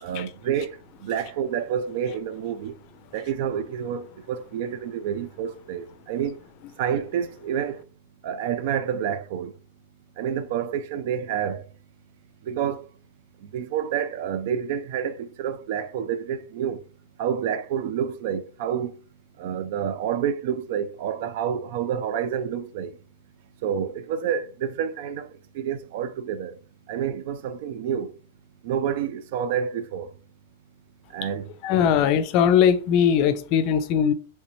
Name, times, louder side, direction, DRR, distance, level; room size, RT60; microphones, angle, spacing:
voice 1, 0.0-2.7 3.1-6.4 6.8-7.8 8.2-9.5 10.2-11.6 12.4-12.9 13.4-16.8 17.2-18.9 19.4-22.9 23.6-25.3 25.5-26.6 26.9-28.1 28.6-30.1 31.1-31.5, right 8 dB, 60° right, 0.4 m, -28 dB
voice 2, 31.6-34.1, left 8 dB, 45° left, 0.5 m, -20 dB
3.2 x 2.9 x 2.7 m
hypercardioid pair, 125°, 0 cm